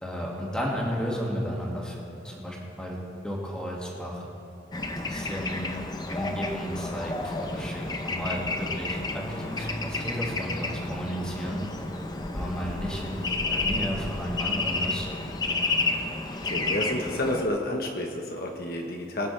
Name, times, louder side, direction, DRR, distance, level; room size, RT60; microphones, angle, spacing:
voice 1, 0.0-3.0 3.2-4.3 5.1-5.7 6.1-11.6 12.3-13.2 13.5-15.1, equal, 5° left, -4 dB, 2.1 m, -33 dB
Bird / Traffic noise roadway noise, 4.7-17.5, left 2 dB, 20° left, 0.7 m, -31 dB
Bass guitar, 9.2-15.4, right 1 dB, 60° right, 1.2 m, -47 dB
voice 2, 16.4-19.3, left 1 dB, 55° left, 1 dB, 1.2 m, -30 dB
22.5 x 9.7 x 3.4 m, 2.7 s
head